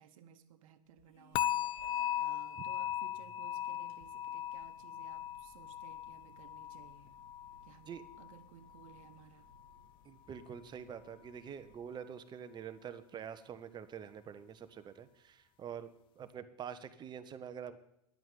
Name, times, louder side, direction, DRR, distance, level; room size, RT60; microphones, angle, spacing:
voice 1, 0.0-7.1 7.6-9.5, right 9 dB, 55° right, 9 dB, 1.3 m, -59 dB
sound 1, 0.9-11.7, left 3 dB, 40° left, 1.7 m, -64 dB
sound 2, 1.3-8.4 8.7-9.1 9.6-9.7, left 11 dB, 25° left, 0.4 m, -38 dB
voice 2, 10.0-15.9 16.2-17.8, right 8 dB, 20° right, 11 dB, 1.0 m, -46 dB
10.5 x 9.1 x 9.2 m, 0.80 s
figure-of-eight pair, 100°, 20 cm